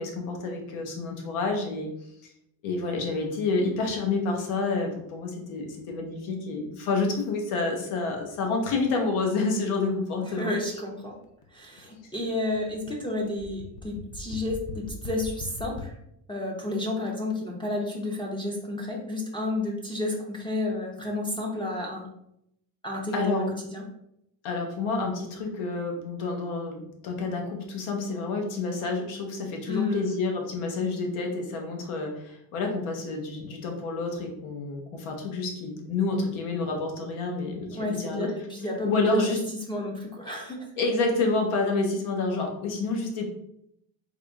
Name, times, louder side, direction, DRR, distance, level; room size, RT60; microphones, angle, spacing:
voice 1, 0.0-1.9 2.2-2.3 2.6-10.5 23.1-23.5 24.4-38.3 38.8-39.4 40.8-43.2, left 3 dB, 85° left, 2 dB, 1.0 m, -29 dB
Beat Day, 9.6-15.8, left 3 dB, 45° left, 0.7 m, -41 dB
voice 2, 10.2-11.1 11.5-15.9 16.3-22.1 22.8-23.8 29.7-30.2 37.7-39.3 39.7-40.7, left 2 dB, 10° left, -2 dB, 0.4 m, -31 dB
3.5 x 2.3 x 3.5 m, 0.76 s
cardioid pair, 130°, 48 cm